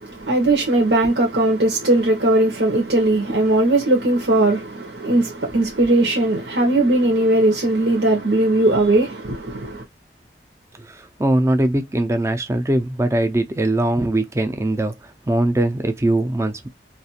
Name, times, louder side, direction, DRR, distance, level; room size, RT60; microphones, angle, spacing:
voice 1, 0.0-9.8, right 2 dB, 85° right, 0.9 m, -18 dB
voice 2, 10.9-14.9 15.3-16.7, right 1 dB, 15° right, 0.4 m, -21 dB
2.5 x 2.3 x 2.7 m
head